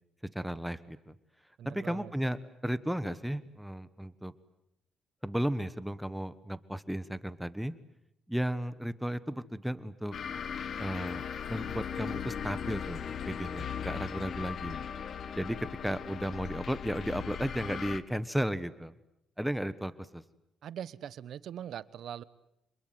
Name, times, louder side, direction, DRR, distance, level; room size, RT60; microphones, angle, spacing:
voice 1, 0.3-1.1 1.6-4.3 5.2-7.7 8.3-10.1 10.8-11.2 11.5-14.8 15.3-18.9 19.4-20.2, equal, ahead, 14 dB, 1.4 m, -34 dB
voice 2, 1.6-2.1 20.6-22.2, right 10 dB, 70° right, 18 dB, 1.1 m, -41 dB
sound 1, 10.1-18.0, left 7 dB, 55° left, 1.6 m, -38 dB
27.5 x 22.0 x 9.3 m, 0.80 s
cardioid pair, 90°, 0 cm